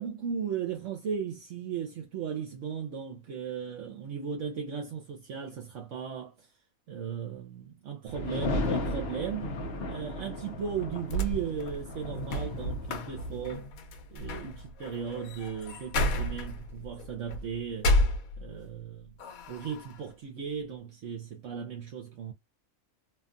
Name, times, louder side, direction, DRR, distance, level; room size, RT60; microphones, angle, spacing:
voice 1, 0.0-6.5 6.9-9.5 9.9-13.8 14.1-17.9 18.4-19.1 19.5-22.3, right 7 dB, 70° right, 1.0 m, -36 dB
sound 1, 8.1-13.5, left 2 dB, 55° left, 0.9 m, -35 dB
sound 2, 11.0-18.8 19.2-20.0, left 1 dB, 90° left, 1.2 m, -32 dB
2.8 x 2.4 x 2.5 m
omnidirectional pair, 1.4 m